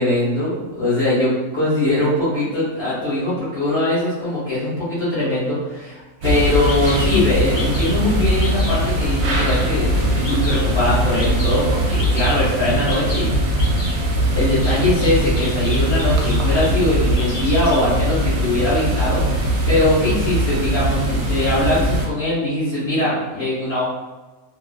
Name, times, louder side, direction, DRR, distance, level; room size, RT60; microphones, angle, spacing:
voice 1, 0.0-13.6 14.3-23.8, left 1 dB, 50° left, -12 dB, 1.1 m, -21 dB
Bird vocalization bird call bird song, 6.2-6.3 6.7-7.1 7.5-8.0 8.4-8.8 9.3-9.7 10.2-10.7 11.2-11.6 12.0-12.4 12.9-13.2 13.6-13.9 14.6-16.7 17.0-17.8, left 2 dB, 35° left, 0.4 m, -32 dB
sound 1, 6.2-22.1, right 1 dB, 70° right, 1.0 m, -20 dB
2.5 x 2.3 x 2.2 m, 1.2 s
omnidirectional pair, 1.5 m